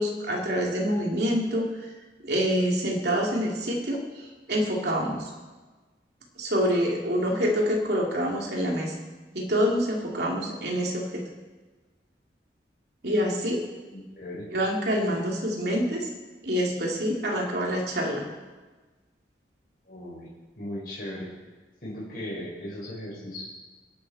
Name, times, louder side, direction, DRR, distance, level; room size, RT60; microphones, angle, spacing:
voice 1, 0.0-1.7 2.2-4.0 4.5-5.3 6.4-9.0 9.3-11.3 13.0-13.7 14.5-16.1 16.4-18.3, equal, 60° right, -1 dB, 3.0 m, -26 dB
voice 2, 13.9-14.5 19.9-20.3 20.6-21.3 21.8-23.4, left 1 dB, 50° left, -6 dB, 4.9 m, -37 dB
21.5 x 11.5 x 4.3 m, 1.3 s
head